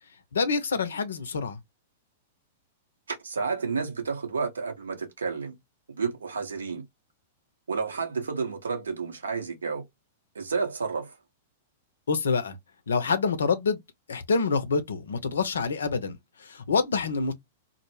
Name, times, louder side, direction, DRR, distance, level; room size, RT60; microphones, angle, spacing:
voice 1, 0.3-1.6 12.1-12.6 12.9-13.8 14.1-17.3, left 4 dB, 70° left, 0.5 m, -26 dB
voice 2, 3.1-5.6 5.9-6.8 7.7-9.8 10.3-11.1, right 5 dB, 75° right, 0.7 m, -31 dB
2.0 x 2.0 x 3.1 m
figure-of-eight pair, 105°, 0 cm